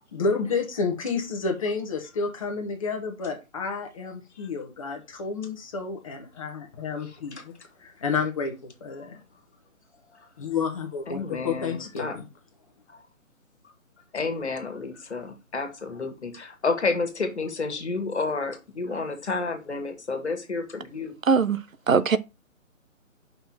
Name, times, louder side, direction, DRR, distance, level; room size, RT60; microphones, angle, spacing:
voice 1, 0.1-7.5 7.8-8.5 8.8-9.2 10.4-12.3, left 4 dB, 25° left, 1.2 m, -30 dB
voice 2, 11.1-12.2 14.1-21.1, left 4 dB, 55° left, 1.9 m, -30 dB
voice 3, 21.3-21.6 21.9-22.2, right 5 dB, 70° right, 0.7 m, -20 dB
5.5 x 4.3 x 5.8 m
figure-of-eight pair, 145°, 41 cm